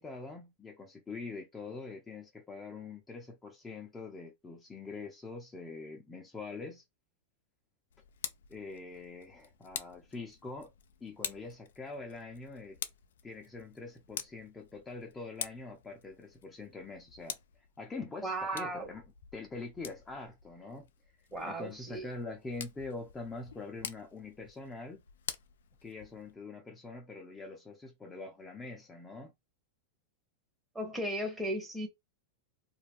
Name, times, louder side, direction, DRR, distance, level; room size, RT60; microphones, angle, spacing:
voice 1, 0.0-6.8 8.5-10.7 11.0-12.8 13.2-17.4 17.8-19.0 19.3-20.9 21.4-25.0 25.8-29.3, left 3 dB, 15° left, 0.6 m, -44 dB
Tick, 7.9-26.3, left 8 dB, 80° left, 0.4 m, -47 dB
voice 2, 18.2-18.9 21.3-22.1 30.7-31.9, right 1 dB, 10° right, 0.9 m, -36 dB
2.4 x 2.2 x 3.4 m
hypercardioid pair, 120°, 0 cm